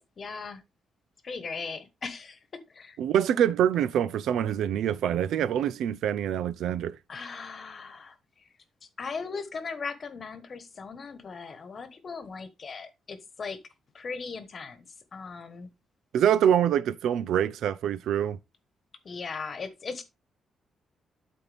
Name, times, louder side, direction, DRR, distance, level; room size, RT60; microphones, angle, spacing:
voice 1, 0.2-0.6 1.2-2.4 2.7-3.0 7.1-8.5 8.8-13.6 13.9-14.8 15.1-15.7 19.0-20.0, left 5 dB, 35° left, 1.2 m, -38 dB
voice 2, 3.0-7.0 16.1-18.4, right 9 dB, 75° right, 0.5 m, -25 dB
12.5 x 4.2 x 3.5 m
cardioid pair, 165°, 0 cm